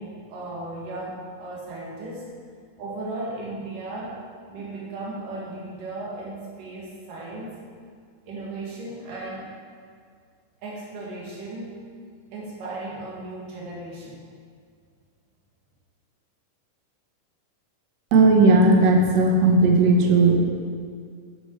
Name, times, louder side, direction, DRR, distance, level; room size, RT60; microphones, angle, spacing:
voice 1, 0.0-2.3 2.8-4.2 4.5-7.5 8.2-9.5 10.6-11.7 12.3-14.2, right 2 dB, 90° right, -4 dB, 3.4 m, -36 dB
voice 2, 18.1-20.4, right 3 dB, 65° right, 2 dB, 2.2 m, -16 dB
13.5 x 6.3 x 4.5 m, 2.1 s
omnidirectional pair, 3.7 m